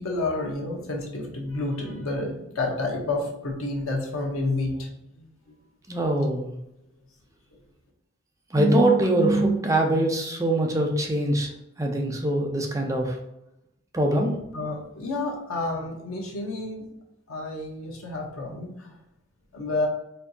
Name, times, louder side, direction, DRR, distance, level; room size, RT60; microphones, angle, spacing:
voice 1, 0.0-4.9 5.2-5.3 14.5-16.9 17.3-19.0 19.5-19.9, left 2 dB, 90° left, 0 dB, 1.0 m, -30 dB
voice 2, 5.9-6.5 8.5-11.5 11.8-13.2 13.9-14.4, right 1 dB, 15° right, 1 dB, 0.5 m, -23 dB
4.4 x 2.7 x 2.7 m, 0.84 s
head